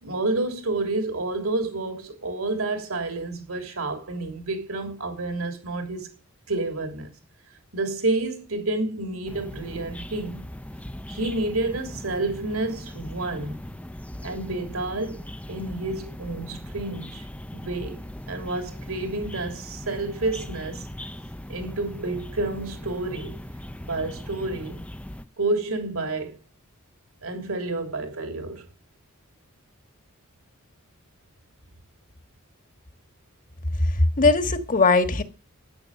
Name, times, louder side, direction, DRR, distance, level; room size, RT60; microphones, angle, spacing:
voice 1, 0.0-6.1 6.5-7.1 7.7-10.4 11.1-13.6 14.2-15.2 15.5-17.3 17.5-18.0 18.3-20.9 21.5-23.3 23.8-24.8 25.4-26.4 27.2-28.6, right 2 dB, 70° right, 3.2 m, -29 dB
sound 1, 9.3-25.3, left 1 dB, 5° left, 0.7 m, -39 dB
voice 2, 33.8-35.2, left 3 dB, 40° left, 1.5 m, -20 dB
13.0 x 9.6 x 6.5 m
head